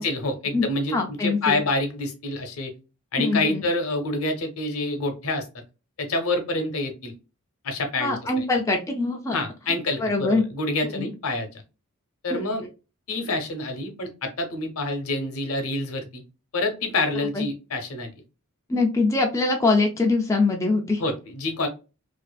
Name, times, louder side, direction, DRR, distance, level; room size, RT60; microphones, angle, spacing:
voice 1, 0.0-2.7 3.1-5.5 6.0-7.1 7.6-8.4 9.3-11.5 12.2-12.7 13.1-16.2 16.5-18.1 21.0-21.7, left 2 dB, 70° left, 5 dB, 0.7 m, -27 dB
voice 2, 0.9-1.6 3.2-3.6 8.0-9.4 9.7-10.4 10.8-11.1 12.3-12.7 17.3-17.5 18.7-21.0, left 3 dB, 15° left, 1 dB, 0.3 m, -23 dB
2.5 x 2.4 x 2.2 m, 0.30 s
head